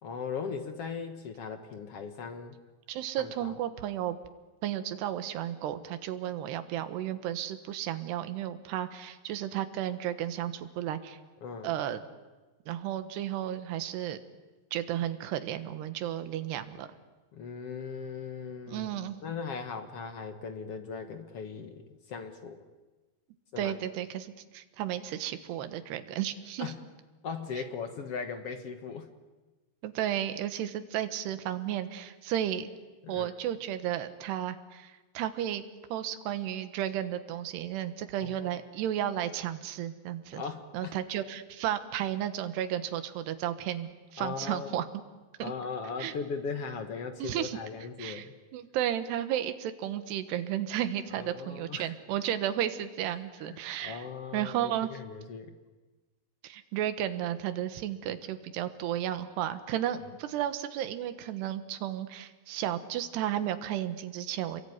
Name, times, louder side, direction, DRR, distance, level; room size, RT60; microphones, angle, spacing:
voice 1, 0.0-2.6 3.2-3.5 11.4-11.7 17.3-18.9 19.2-22.6 23.5-23.7 26.6-26.8 27.2-29.1 33.0-33.3 38.2-38.6 40.3-41.0 44.2-44.8 45.4-48.3 51.1-51.9 53.1-55.6, left 5 dB, 65° left, 7 dB, 1.5 m, -39 dB
voice 2, 2.9-4.2 4.6-11.2 11.6-12.0 12.7-14.2 14.7-16.9 18.7-19.2 23.6-26.7 29.8-32.7 33.1-35.6 35.9-40.4 40.7-44.8 45.4-45.5 46.0-46.1 47.2-47.6 48.0-48.3 48.5-54.0 54.3-54.9 56.4-64.6, right 11 dB, 80° right, 10 dB, 3.4 m, -33 dB
27.5 x 22.5 x 9.5 m, 1.2 s
omnidirectional pair, 4.8 m